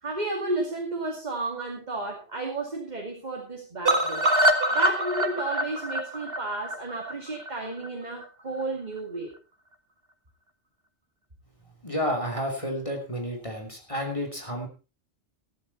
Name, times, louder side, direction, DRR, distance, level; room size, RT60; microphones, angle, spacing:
voice 1, 0.0-4.3 4.7-9.3, right 2 dB, 40° right, 0 dB, 2.6 m, -32 dB
sound 1, 3.8-7.9 8.2-8.3 8.6-8.7 9.0-9.1, right 1 dB, 55° right, 1.9 m, -25 dB
voice 2, 11.8-14.7, equal, 25° left, 3 dB, 3.0 m, -30 dB
14.5 x 12.0 x 4.2 m, 0.33 s
omnidirectional pair, 1.2 m